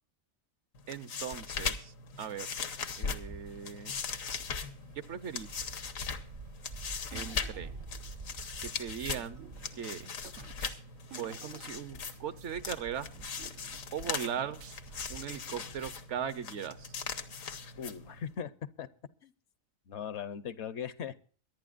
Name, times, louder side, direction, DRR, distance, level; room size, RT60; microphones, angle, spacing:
sound 1, 0.7-18.4, left 5 dB, 80° left, 1.5 m, -40 dB
voice 1, 0.9-2.5 3.0-3.9 5.1-5.6 7.1-7.7 8.6-9.4 9.8-10.1 11.2-13.1 13.9-14.6 15.1-16.9, right 8 dB, 65° right, 13 dB, 1.1 m, -39 dB
Wind, 2.9-16.0, right 3 dB, 45° right, 0.8 m, -50 dB
sound 2, 7.1-8.6 9.1-12.6 12.8-12.9 13.1-15.1, right 8 dB, 85° right, 1.3 m, -53 dB
voice 2, 17.8-18.5 18.8-18.9 19.2-19.3 19.9-21.2, left 7 dB, 60° left, 14 dB, 1.0 m, -39 dB
23.5 x 11.0 x 2.4 m, 0.42 s
omnidirectional pair, 1.4 m